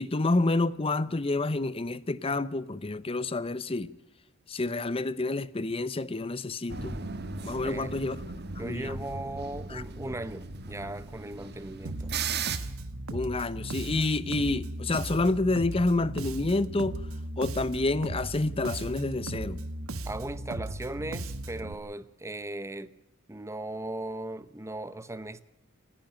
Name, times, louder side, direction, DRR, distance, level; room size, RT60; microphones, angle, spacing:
voice 1, 0.0-3.9 4.5-7.0 7.4-8.2 8.6-9.0 9.7-9.8 13.1-17.0 17.4-19.6, left 2 dB, 25° left, 0.7 m, -28 dB
sound 1, 6.7-12.6, right 5 dB, 50° right, 1.5 m, -37 dB
voice 2, 7.6-8.2 8.6-12.1 20.0-22.9 23.3-25.4, right 1 dB, 15° right, 0.8 m, -38 dB
Bass guitar, 11.8-21.7, right 1 dB, 80° right, 1.3 m, -37 dB
29.0 x 10.5 x 8.8 m
head